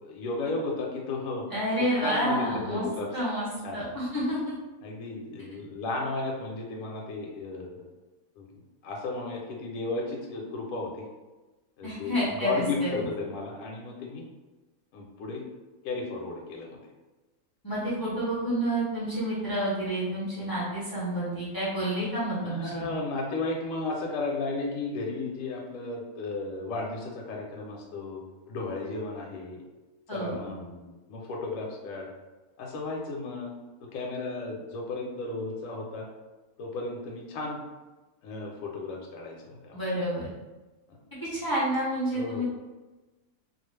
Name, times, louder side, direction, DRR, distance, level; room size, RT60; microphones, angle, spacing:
voice 1, 0.0-1.5 2.0-3.1 3.6-3.8 4.8-7.8 8.4-8.5 8.8-11.1 11.8-14.3 14.9-15.4 15.8-16.8 22.4-28.2 28.5-29.6 30.1-32.1 32.6-33.5 33.9-36.1 36.6-37.6 38.2-39.8 40.9-41.0 42.1-42.5, left 3 dB, 70° left, -1 dB, 0.9 m, -34 dB
voice 2, 1.5-2.8 3.1-3.5 3.7-4.6 11.8-13.1 17.6-22.9 30.1-30.4 39.7-40.3 41.2-42.5, right 1 dB, 35° left, -9 dB, 0.3 m, -29 dB
2.3 x 2.3 x 3.2 m, 1.2 s
omnidirectional pair, 1.5 m